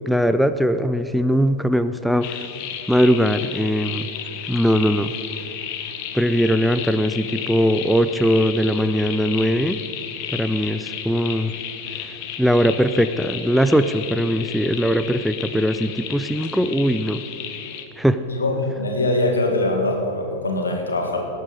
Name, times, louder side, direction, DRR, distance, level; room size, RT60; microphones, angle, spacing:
voice 1, 0.1-2.5 2.9-4.1 4.5-5.1 6.1-9.8 10.3-11.5 12.0-17.2 18.0-18.2, equal, ahead, 10 dB, 0.4 m, -20 dB
sound 1, 2.2-17.8, left 9 dB, 45° left, 1.0 m, -33 dB
voice 2, 18.3-21.3, left 2 dB, 75° left, 2 dB, 2.0 m, -22 dB
19.0 x 8.3 x 5.1 m, 3.0 s
figure-of-eight pair, 90°, 0 cm